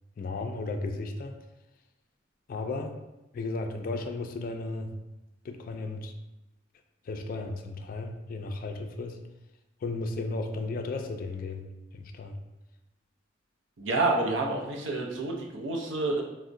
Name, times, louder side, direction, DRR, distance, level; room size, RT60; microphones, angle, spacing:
voice 1, 0.2-1.4 2.5-3.0 3.3-4.9 5.4-6.1 7.1-9.2 9.8-11.7 11.9-12.4, left 3 dB, 50° left, 5 dB, 0.3 m, -34 dB
voice 2, 13.8-16.2, right 2 dB, 90° right, 0 dB, 0.6 m, -28 dB
4.4 x 2.1 x 2.5 m, 1.0 s
head